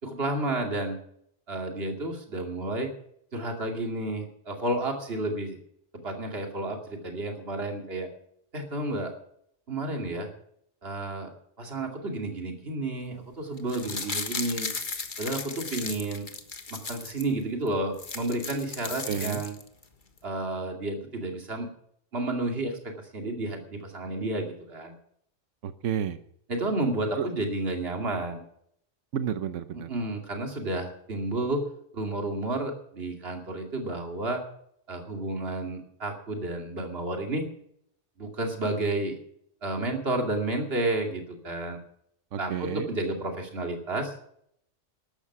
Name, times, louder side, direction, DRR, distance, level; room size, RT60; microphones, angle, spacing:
voice 1, 0.0-1.0 1.5-2.9 3.3-5.6 6.0-8.1 8.5-9.1 9.7-10.3 10.8-11.3 11.6-14.7 15.2-16.3 16.7-19.5 20.2-21.7 22.1-24.9 26.5-28.4 29.9-31.6 31.9-34.4 34.9-37.5 38.2-39.2 39.6-41.8 42.4-44.3, right 2 dB, 55° right, 3 dB, 2.7 m, -31 dB
sound 1, 13.6-17.3 17.7-17.8 17.9-19.8 20.2-20.3, left 4 dB, 40° left, 1.5 m, -36 dB
voice 2, 19.1-19.4 25.6-26.2 27.1-27.3 29.1-29.9 42.3-42.9, right 8 dB, 80° right, 11 dB, 1.2 m, -31 dB
13.5 x 12.5 x 6.0 m, 0.69 s
omnidirectional pair, 1.3 m